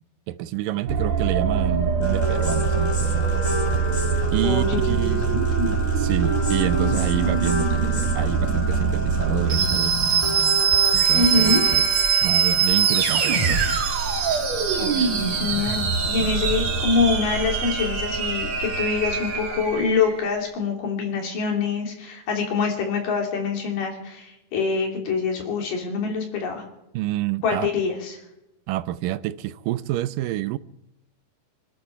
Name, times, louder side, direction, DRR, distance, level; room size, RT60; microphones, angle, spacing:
voice 1, 0.3-3.3 4.3-5.4 6.0-10.2 10.9-11.8 12.2-13.6 16.2-16.3 26.9-27.7 28.7-30.6, right 14 dB, 90° right, 2.4 m, -28 dB
sound 1, 0.9-20.2, right 6 dB, 60° right, 3.0 m, -23 dB
sound 2, 2.0-19.6, left 1 dB, 10° left, 5.4 m, -32 dB
voice 2, 4.4-5.8 11.1-11.6 14.8-26.6 27.4-28.2, left 4 dB, 75° left, 4.7 m, -25 dB
27.0 x 11.5 x 4.7 m
omnidirectional pair, 3.8 m